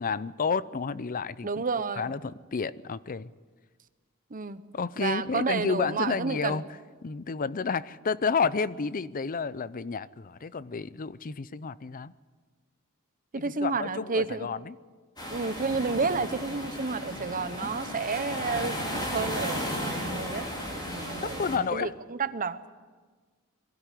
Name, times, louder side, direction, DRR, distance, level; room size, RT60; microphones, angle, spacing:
voice 1, 0.0-1.5 2.0-3.3 4.7-6.6 7.0-12.1 13.4-14.8 21.2-21.9, left 5 dB, 40° left, 17 dB, 0.5 m, -30 dB
voice 2, 1.4-2.1 4.3-4.6 5.0-6.6 13.3-14.5 15.3-20.5 20.9-22.7, right 4 dB, 40° right, 12 dB, 0.8 m, -31 dB
sound 1, 15.2-21.6, equal, 20° left, 4.1 m, -34 dB
22.5 x 12.5 x 9.8 m, 1.4 s
head